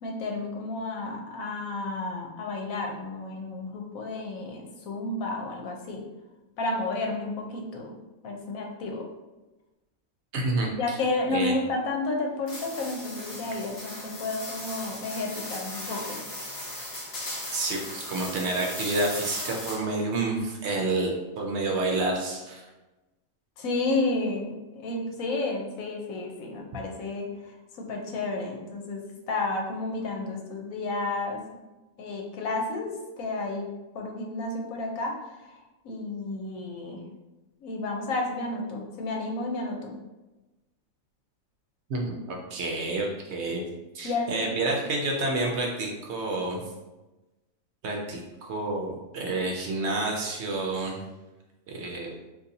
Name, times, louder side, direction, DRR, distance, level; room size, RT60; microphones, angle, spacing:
voice 1, 0.0-6.0 6.6-7.9 8.2-9.1 10.8-16.2 23.6-31.4 32.0-33.7 33.9-35.2 35.5-37.0 37.6-39.9 44.0-44.5, left 2 dB, 80° left, 1 dB, 1.1 m, -31 dB
voice 2, 10.3-11.0 11.3-11.5 17.5-22.6 41.9-43.6 43.9-46.6 47.8-51.0 51.7-52.1, right 2 dB, 65° right, 0 dB, 0.8 m, -29 dB
sound 1, 12.5-20.0, left 1 dB, 35° left, 0.7 m, -37 dB
3.9 x 2.6 x 2.6 m, 1.1 s
omnidirectional pair, 1.4 m